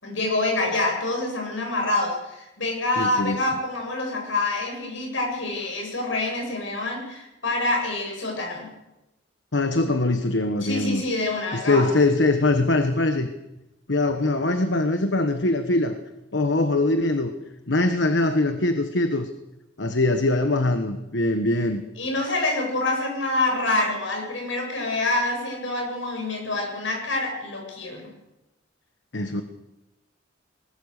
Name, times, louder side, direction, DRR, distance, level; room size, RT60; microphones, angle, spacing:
voice 1, 0.0-8.7 10.6-11.9 22.0-28.1, left 2 dB, 85° left, 1 dB, 7.9 m, -26 dB
voice 2, 3.0-3.4 9.5-11.0 11.5-13.3 13.9-15.9 16.3-17.3 17.7-19.3 19.8-21.8 29.1-29.4, left 2 dB, 70° left, 7 dB, 1.3 m, -22 dB
20.5 x 20.0 x 6.6 m, 0.96 s
head